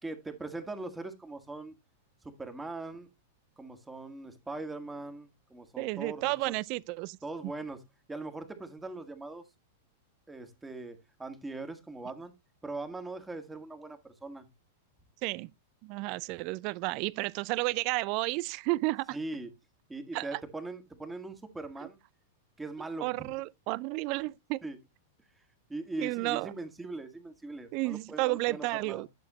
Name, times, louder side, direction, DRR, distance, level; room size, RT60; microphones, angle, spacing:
voice 1, 0.0-1.7 2.2-3.1 3.6-6.5 7.2-7.8 8.1-9.4 10.3-12.3 12.6-14.5 19.1-19.5 19.9-22.0 22.6-23.3 24.6-24.8 25.7-29.0, right 2 dB, 10° right, 1.8 m, -41 dB
voice 2, 5.8-7.2 7.4-7.5 15.2-15.5 15.8-19.2 20.1-20.4 23.0-24.6 26.0-26.5 27.7-29.1, right 22 dB, 45° right, 0.4 m, -32 dB
10.5 x 6.7 x 3.0 m
figure-of-eight pair, 95°, 0 cm